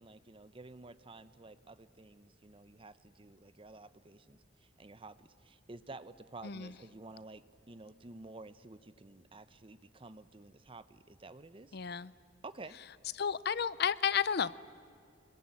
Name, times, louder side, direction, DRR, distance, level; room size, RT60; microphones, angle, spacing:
voice 1, 0.0-11.8 12.4-12.8, right 2 dB, 30° right, 13 dB, 0.8 m, -51 dB
voice 2, 11.7-12.1 13.2-14.6, left 7 dB, 55° left, 18 dB, 0.6 m, -32 dB
26.0 x 21.5 x 9.8 m, 2.4 s
head